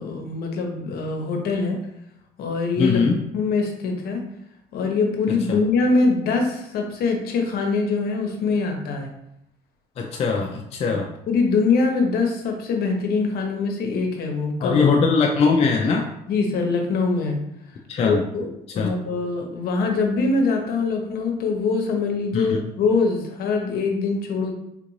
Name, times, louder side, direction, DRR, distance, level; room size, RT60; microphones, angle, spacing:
voice 1, 0.0-1.8 2.4-4.2 4.7-9.1 10.8-11.0 11.3-14.9 16.3-17.4 18.0-18.5 18.7-24.5, left 4 dB, 65° left, 2 dB, 0.8 m, -23 dB
voice 2, 2.8-3.2 5.5-5.6 10.0-11.1 14.6-16.1 17.9-18.2 18.7-18.9 22.3-22.6, left 5 dB, 40° left, 1 dB, 0.4 m, -21 dB
3.7 x 2.5 x 3.0 m, 0.80 s
cardioid pair, 110°, 17 cm